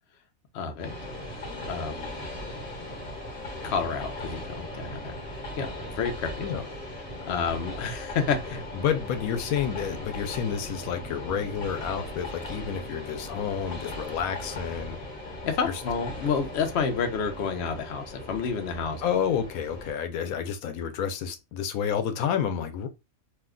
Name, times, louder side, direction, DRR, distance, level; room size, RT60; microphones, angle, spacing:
voice 1, 0.5-1.0 1.7-2.1 3.6-6.5 7.3-8.6 15.2-19.0, left 5 dB, 60° left, 0.8 m, -30 dB
Train, 0.8-19.9, left 1 dB, 40° left, 1.3 m, -38 dB
voice 2, 8.7-15.0 15.6-15.8 19.0-22.9, left 8 dB, 85° left, 1.0 m, -29 dB
2.7 x 2.2 x 3.6 m
omnidirectional pair, 1.5 m